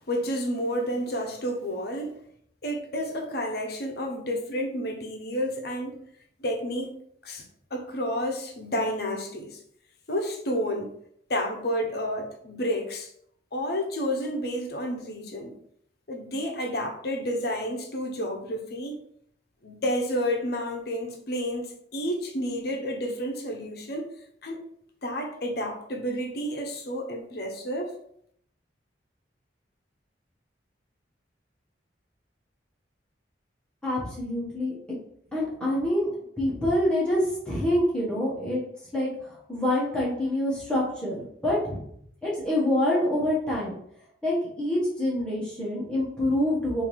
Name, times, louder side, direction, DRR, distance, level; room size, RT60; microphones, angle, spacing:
voice 1, 0.1-2.1 2.6-6.1 6.4-7.5 7.7-9.6 10.1-10.9 11.3-13.1 13.5-15.6 16.1-19.0 19.6-24.1 24.4-24.6 25.0-28.0, equal, 55° left, 2 dB, 0.8 m, -30 dB
voice 2, 33.8-35.0 35.3-36.1 36.4-38.6 38.9-41.8 42.2-43.7 44.2-46.8, left 1 dB, 5° left, -7 dB, 1.3 m, -26 dB
3.8 x 2.7 x 4.7 m, 0.68 s
head